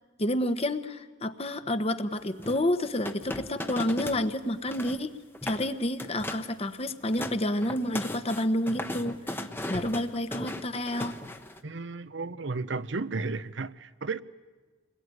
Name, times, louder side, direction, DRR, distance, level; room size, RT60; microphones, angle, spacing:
voice 1, 0.2-5.2 5.4-9.2 9.7-11.2, left 1 dB, 30° left, 1.2 m, -29 dB
sound 1, 2.4-4.2 4.5-5.0 5.3-5.7 6.0-6.5 6.9-11.6, left 1 dB, 10° left, 1.1 m, -37 dB
voice 2, 11.6-14.2, right 3 dB, 60° right, 0.8 m, -33 dB
28.0 x 21.0 x 9.7 m
head